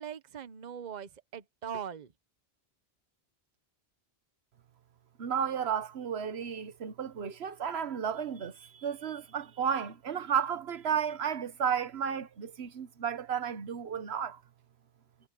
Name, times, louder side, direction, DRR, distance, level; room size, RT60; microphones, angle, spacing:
voice 1, 0.0-2.1, right 8 dB, 45° right, 1.0 m, -41 dB
voice 2, 5.2-14.4, right 7 dB, 80° right, 1.3 m, -33 dB
omnidirectional pair, 1.1 m